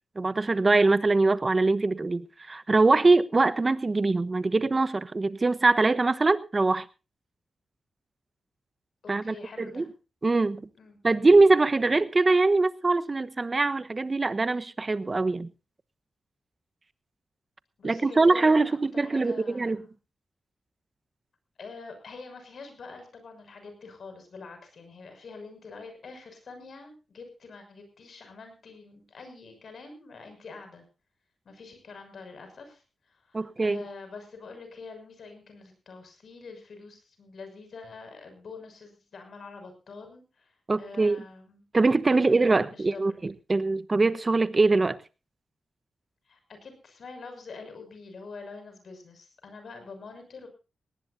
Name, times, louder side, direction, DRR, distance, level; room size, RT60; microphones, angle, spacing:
voice 1, 0.2-6.9 9.1-9.9 10.2-10.6 11.0-15.5 17.8-19.8 33.3-33.8 40.7-41.2 41.7-45.0, right 3 dB, 35° right, 13 dB, 1.1 m, -23 dB
voice 2, 9.0-9.9 10.8-11.0 17.8-19.9 21.6-30.8 31.4-32.8 33.1-40.5 40.8-41.6 42.1-43.2 46.3-50.5, left 4 dB, 70° left, 6 dB, 6.2 m, -45 dB
19.0 x 18.0 x 2.7 m, 0.32 s
cardioid pair, 55°, 0 cm